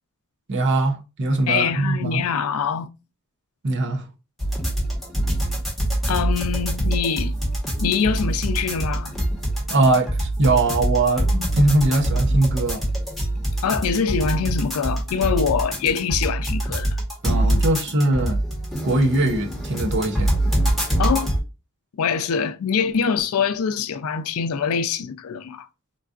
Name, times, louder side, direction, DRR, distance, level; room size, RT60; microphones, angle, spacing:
voice 1, 0.5-2.2 3.6-4.0 9.7-12.9 17.2-18.4 18.8-20.3, right 2 dB, 55° right, 0.7 m, -21 dB
voice 2, 1.5-2.9 6.1-7.3 7.8-9.1 13.6-17.0 21.0-21.3 22.0-25.7, left 6 dB, 85° left, 0.4 m, -24 dB
sound 1, 4.4-21.4, right 1 dB, ahead, 1.0 m, -24 dB
3.8 x 2.4 x 2.4 m
head